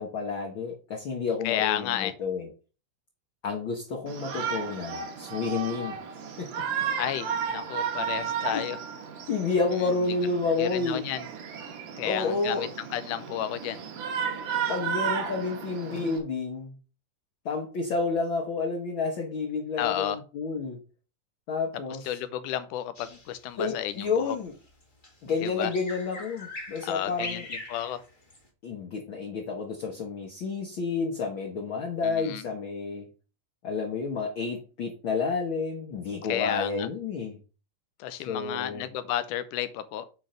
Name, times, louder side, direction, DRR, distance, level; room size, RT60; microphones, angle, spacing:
voice 1, 0.0-2.5 3.4-6.0 6.4-6.5 8.5-8.6 9.3-11.1 12.0-12.7 14.7-16.7 17.4-20.8 21.5-22.0 23.6-24.5 25.2-27.4 28.6-33.1 33.6-37.4 38.3-38.9, left 4 dB, 55° left, 1 dB, 1.6 m, -30 dB
voice 2, 1.4-2.1 7.0-8.8 9.8-9.9 10.6-11.3 12.0-13.8 19.8-20.2 22.1-24.4 25.4-25.7 26.8-28.0 32.0-32.5 36.2-36.9 38.0-40.1, left 12 dB, 85° left, 13 dB, 2.2 m, -32 dB
Shout, 4.1-16.2, right 7 dB, 80° right, 2.9 m, -34 dB
Bird vocalization bird call bird song, 22.9-28.5, left 2 dB, 20° left, 1.3 m, -42 dB
8.8 x 4.0 x 5.1 m, 0.34 s
omnidirectional pair, 3.6 m